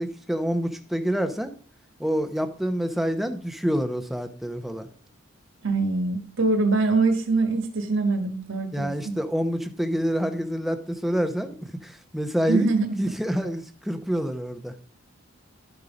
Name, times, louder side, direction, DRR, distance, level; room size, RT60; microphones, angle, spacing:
voice 1, 0.0-1.5 2.0-4.9 8.7-12.7 13.0-14.7, equal, ahead, 7 dB, 0.8 m, -27 dB
voice 2, 5.6-9.1 12.5-13.1, right 3 dB, 65° right, 7 dB, 1.3 m, -24 dB
12.0 x 5.5 x 5.0 m, 0.42 s
head